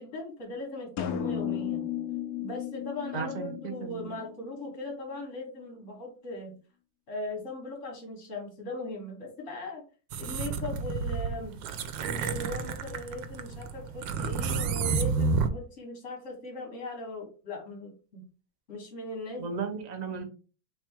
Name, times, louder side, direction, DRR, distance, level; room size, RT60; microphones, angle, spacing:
voice 1, 0.0-1.9 2.4-6.6 7.1-9.8 10.2-11.6 12.0-18.2 18.7-19.7, left 2 dB, 45° left, 0 dB, 1.7 m, -39 dB
sound 1, 1.0-4.8, left 10 dB, 65° left, 1.0 m, -35 dB
voice 2, 3.1-4.1 19.4-20.2, right 5 dB, 45° right, 4 dB, 0.5 m, -35 dB
sound 2, 10.1-15.5, right 5 dB, 85° right, 1.3 m, -30 dB
3.4 x 3.4 x 4.4 m, 0.36 s
omnidirectional pair, 2.0 m